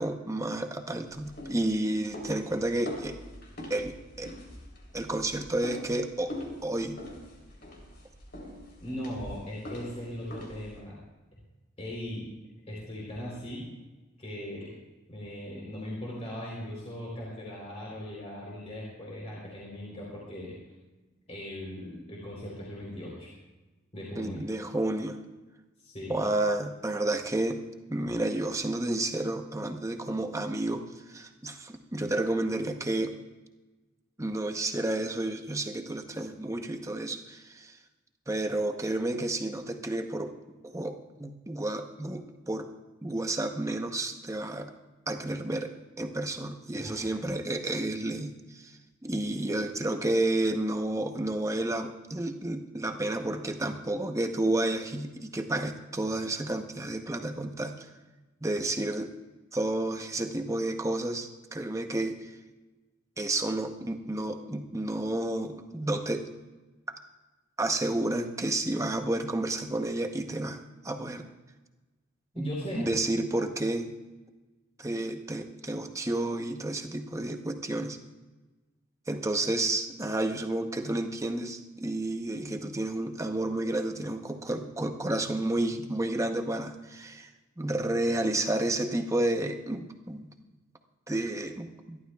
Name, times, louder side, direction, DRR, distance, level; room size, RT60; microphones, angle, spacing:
voice 1, 0.0-3.2 3.7-4.3 4.9-6.3 6.6-7.0 24.2-25.2 26.1-27.6 27.9-33.2 34.2-37.8 38.3-40.3 40.6-42.7 43.0-44.7 45.1-45.7 46.0-57.9 58.4-59.1 59.5-62.3 63.2-66.3 67.6-70.6 70.8-71.3 72.3-73.9 74.8-78.0 79.1-87.3 87.6-90.3 91.1-92.0, right 1 dB, 15° right, 5 dB, 0.8 m, -31 dB
sound 1, 1.1-10.8, left 1 dB, 50° left, 3.5 m, -43 dB
voice 2, 8.8-11.0 11.8-12.3 12.7-13.6 14.2-14.7 15.1-20.5 21.3-23.3 23.9-24.4 25.8-26.3 46.7-47.2 72.4-72.9, left 1 dB, 30° left, -5 dB, 3.6 m, -39 dB
26.0 x 12.5 x 2.3 m, 1.2 s
head